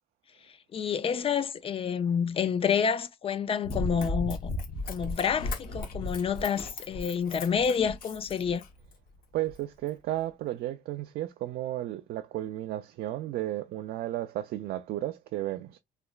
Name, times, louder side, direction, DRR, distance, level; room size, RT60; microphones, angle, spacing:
voice 1, 0.7-4.5 4.9-8.6, left 7 dB, 35° left, 0.4 m, -28 dB
Run, 3.6-8.9 9.5-9.6, left 2 dB, 60° left, 0.9 m, -35 dB
voice 2, 9.3-15.8, right 14 dB, 65° right, 0.4 m, -33 dB
3.2 x 2.9 x 2.3 m
cardioid pair, 110°, 17 cm